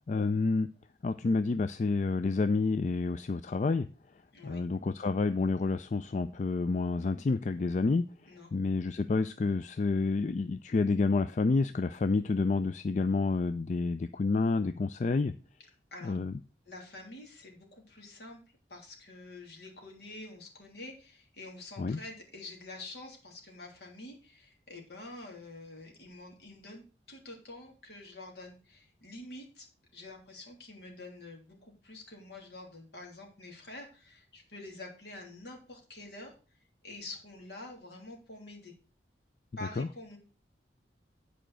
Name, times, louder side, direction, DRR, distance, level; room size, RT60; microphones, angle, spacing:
voice 1, 0.1-0.7 1.0-3.9 4.4-8.0 8.5-15.3 16.0-16.3 21.8-22.0 39.8-39.9, left 3 dB, 40° left, 11 dB, 0.3 m, -29 dB
voice 2, 16.6-18.4 18.7-29.7 29.9-38.7 39.6-40.2, left 2 dB, 70° left, 1 dB, 3.1 m, -47 dB
9.1 x 5.0 x 6.2 m, 0.36 s
head